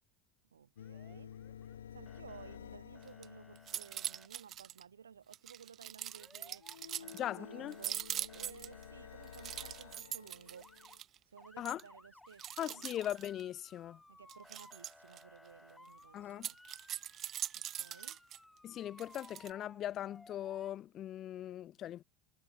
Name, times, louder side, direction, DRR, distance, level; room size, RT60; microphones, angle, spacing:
voice 1, 0.5-1.3 1.9-6.7 7.0-10.7 11.3-12.8 14.1-16.6 17.7-18.2, right 7 dB, 75° right, 4.1 m, -56 dB
sound 1, 0.7-4.3 6.6-11.0, left 9 dB, 70° left, 0.9 m, -52 dB
Motor vehicle (road) / Siren, 0.8-1.8 2.1-2.6 2.9-4.3 6.1-6.8 7.0-10.0 10.5-11.0 11.4-20.7, left 2 dB, 5° left, 4.5 m, -60 dB
sound 2, 3.0-3.2 3.6-4.8 5.3-7.2 7.7-8.8 9.3-11.2 11.6-11.8 12.4-13.4 14.3-15.2 16.3-18.4 19.0-19.5, right 11 dB, 40° right, 0.5 m, -42 dB
voice 2, 7.1-7.7 11.6-11.8 12.6-14.0 16.1-16.5 18.6-22.0, left 12 dB, 40° left, 0.5 m, -40 dB
figure-of-eight pair, 70°, 0 cm